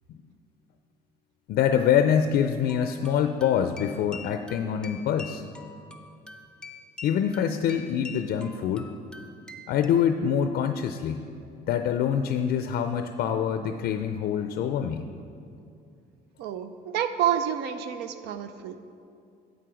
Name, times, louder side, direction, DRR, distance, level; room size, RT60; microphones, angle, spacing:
voice 1, 1.5-5.5 7.0-8.9 9.7-11.3 11.7-15.0, left 8 dB, 65° left, 8 dB, 0.4 m, -25 dB
sound 1, 2.6-9.9, left 4 dB, 5° left, 0.5 m, -45 dB
voice 2, 16.4-18.8, right 9 dB, 85° right, 10 dB, 0.5 m, -29 dB
8.1 x 7.6 x 5.0 m, 2.5 s
cardioid pair, 110°, 17 cm